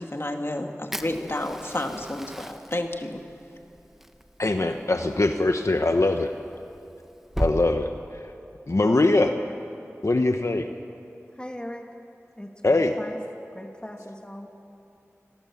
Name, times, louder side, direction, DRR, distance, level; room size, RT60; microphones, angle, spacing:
voice 1, 0.0-3.2, left 1 dB, 50° left, 4 dB, 2.1 m, -31 dB
Fire, 0.9-7.6, equal, 5° right, 1.2 m, -37 dB
voice 2, 4.4-6.3 7.4-8.3 8.7-9.3 10.0-10.7 12.6-12.9, left 2 dB, 70° left, 5 dB, 1.0 m, -22 dB
voice 3, 11.3-12.0 12.4-13.2 13.5-14.5, equal, 20° left, 2 dB, 2.7 m, -39 dB
29.0 x 21.5 x 7.2 m, 2.7 s
wide cardioid pair, 45°, 5 cm